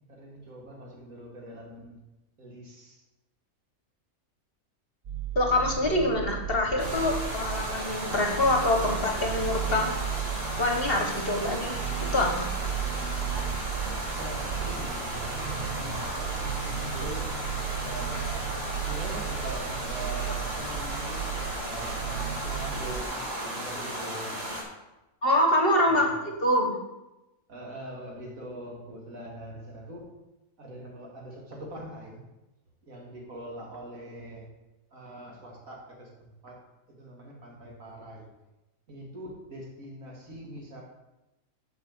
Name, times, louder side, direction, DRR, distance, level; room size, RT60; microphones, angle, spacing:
voice 1, 0.1-2.0 2.4-3.0 14.2-17.3 17.7-18.5 18.8-24.4 25.8-26.3 27.5-30.1 30.6-32.2 32.8-34.5 34.9-36.6 37.0-38.3 38.9-40.8, right 1 dB, 60° right, -1 dB, 2.4 m, -42 dB
sound 1, 5.0-23.0, right 9 dB, 80° right, 0.4 m, -35 dB
voice 2, 5.3-10.0 10.6-11.7 12.0-12.5 25.2-26.1 26.4-26.8, left 1 dB, 40° left, 2 dB, 1.3 m, -25 dB
sound 2, 6.8-24.6, right 1 dB, 40° right, 2.3 m, -35 dB
7.3 x 5.3 x 7.2 m, 0.97 s
omnidirectional pair, 1.6 m